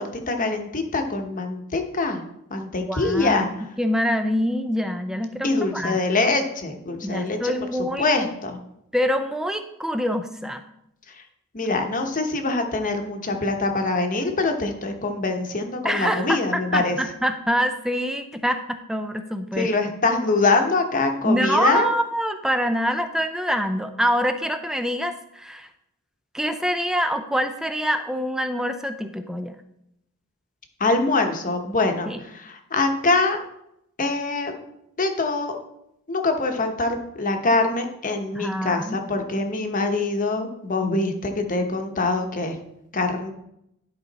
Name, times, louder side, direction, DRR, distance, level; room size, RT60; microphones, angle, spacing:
voice 1, 0.0-2.2 2.5-3.6 5.4-7.5 8.0-8.6 11.1-11.2 11.5-17.0 19.6-21.9 30.8-33.4 34.0-34.6 35.0-35.5 36.1-42.6 42.9-43.3, left 3 dB, 35° left, 5 dB, 1.0 m, -24 dB
voice 2, 2.9-6.0 7.0-8.1 8.9-10.6 15.8-19.7 21.2-25.7 26.3-29.6 32.1-32.2 38.3-39.0, equal, ahead, 7 dB, 0.4 m, -25 dB
11.0 x 5.0 x 4.1 m, 0.79 s
head